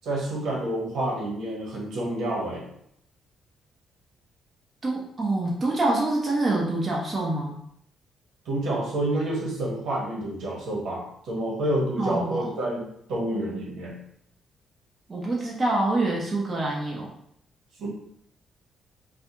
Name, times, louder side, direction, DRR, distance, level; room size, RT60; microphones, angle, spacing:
voice 1, 0.0-2.6 8.4-14.0 17.8-17.9, right 1 dB, 80° right, -3 dB, 1.2 m, -28 dB
voice 2, 4.8-7.6 12.0-12.5 15.1-17.1, right 2 dB, 30° right, -3 dB, 1.0 m, -26 dB
4.0 x 2.3 x 2.9 m, 0.70 s
cardioid pair, 90°, 0 cm